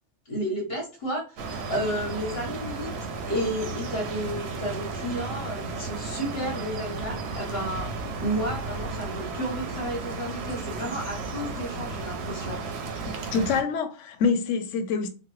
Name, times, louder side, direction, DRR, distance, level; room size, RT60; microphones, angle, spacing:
voice 1, 0.3-2.9 3.3-7.9 8.2-12.7, equal, 60° left, 1.3 m, -32 dB
sound 1, 1.4-13.6, right 3 dB, 70° right, 0.8 m, -34 dB
voice 2, 13.0-15.1, left 5 dB, 85° left, 0.9 m, -26 dB
3.1 x 2.1 x 3.0 m
omnidirectional pair, 1.2 m